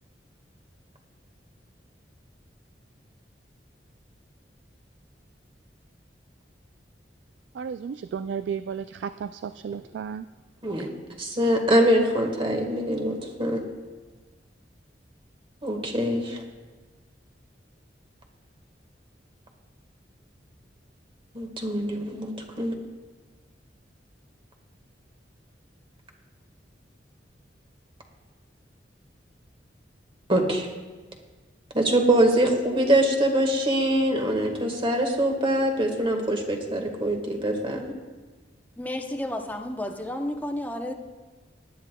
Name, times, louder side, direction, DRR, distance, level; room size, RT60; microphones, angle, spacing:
voice 1, 7.6-10.3, right 7 dB, 80° right, 12 dB, 0.3 m, -33 dB
voice 2, 11.2-13.6 15.6-16.4 21.3-22.3 22.6-22.7 30.3-30.7 31.7-37.9, right 1 dB, 30° right, 3 dB, 1.5 m, -23 dB
voice 3, 38.8-40.9, left 1 dB, 10° left, 4 dB, 0.8 m, -31 dB
19.5 x 11.0 x 2.2 m, 1.3 s
head